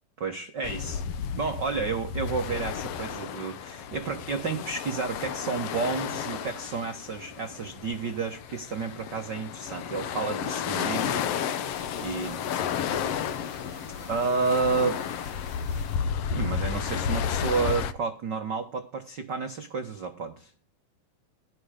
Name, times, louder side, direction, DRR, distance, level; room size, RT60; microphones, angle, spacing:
voice 1, 0.2-1.0 1.3-11.2 12.0-12.4 14.1-15.0 16.2-20.5, right 4 dB, 70° right, 5 dB, 1.0 m, -31 dB
sound 1, 0.6-17.9, left 7 dB, 90° left, 1.3 m, -32 dB
voice 2, 10.6-14.4 14.8-15.3, left 5 dB, 50° left, 6 dB, 2.7 m, -48 dB
sound 2, 11.0-16.0, right 3 dB, 25° right, 4.1 m, -54 dB
16.5 x 11.0 x 5.1 m, 0.36 s
omnidirectional pair, 4.1 m